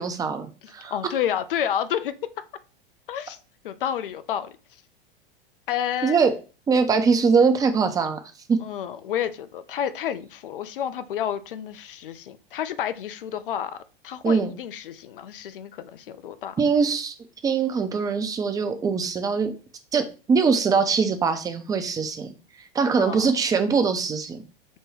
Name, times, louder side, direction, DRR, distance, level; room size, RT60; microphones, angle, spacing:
voice 1, 0.0-0.5 0.7-1.0 6.0-6.3 6.7-8.2 8.5-8.6 14.2-14.5 16.6-17.1 17.4-19.5 19.9-22.3 22.7-24.4, right 5 dB, 10° right, 0.5 m, -22 dB
voice 2, 0.6-2.1 3.1-3.4 3.6-4.6 5.7-6.2 8.6-16.6 23.0-23.3, left 9 dB, 65° left, 0.6 m, -30 dB
6.4 x 2.2 x 3.1 m
figure-of-eight pair, 90°, 29 cm